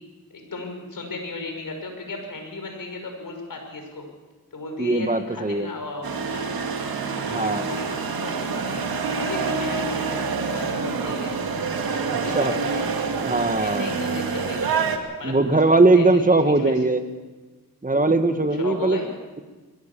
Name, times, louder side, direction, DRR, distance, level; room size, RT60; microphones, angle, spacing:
voice 1, 0.3-4.1 4.5-6.7 7.3-8.9 9.2-11.4 12.2-12.8 13.6-14.8 15.2-15.6 15.9-16.8 18.5-19.1, left 2 dB, 70° left, 3 dB, 5.9 m, -35 dB
voice 2, 4.8-5.7 7.3-7.7 12.3-12.6 13.2-13.9 15.2-17.0 17.8-19.0, right 2 dB, 25° right, 8 dB, 1.8 m, -20 dB
sound 1, 6.0-15.0, right 5 dB, 90° right, 2.1 m, -27 dB
22.0 x 16.5 x 7.1 m, 1.3 s
cardioid pair, 60°, 35 cm